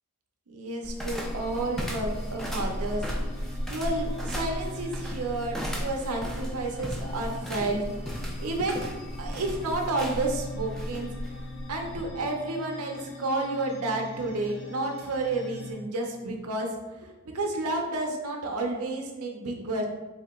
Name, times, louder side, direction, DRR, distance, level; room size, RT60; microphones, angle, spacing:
voice 1, 0.5-3.0 3.7-8.9 9.2-11.1 11.7-16.7 17.0-19.9, right 2 dB, 85° right, 1 dB, 0.6 m, -31 dB
sound 1, 0.8-12.1, equal, ahead, 0.4 m, -35 dB
sound 2, 1.2-15.7, left 2 dB, 50° left, 0.7 m, -42 dB
4.1 x 2.8 x 3.6 m, 1.2 s
head